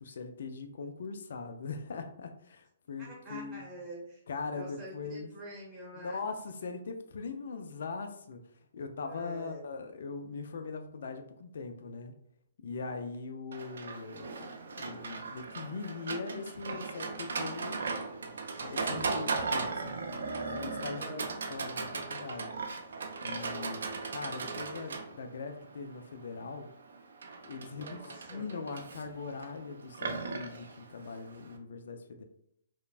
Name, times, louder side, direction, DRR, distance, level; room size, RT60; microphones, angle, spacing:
voice 1, 0.0-3.6 4.3-5.3 5.9-8.4 8.7-12.1 12.6-14.5 14.8-17.9 18.6-21.2 21.5-22.5 23.2-23.8 24.1-26.7 27.4-32.2, left 4 dB, 70° left, 6 dB, 0.3 m, -41 dB
voice 2, 3.0-4.2 4.5-6.2 9.1-9.6 20.7-21.3 27.7-28.4, right 1 dB, 20° right, -4 dB, 0.8 m, -46 dB
Livestock farm animals working animals, 13.5-31.6, right 4 dB, 75° right, 0.4 m, -38 dB
3.1 x 2.0 x 2.4 m, 0.73 s
hypercardioid pair, 135°, 0 cm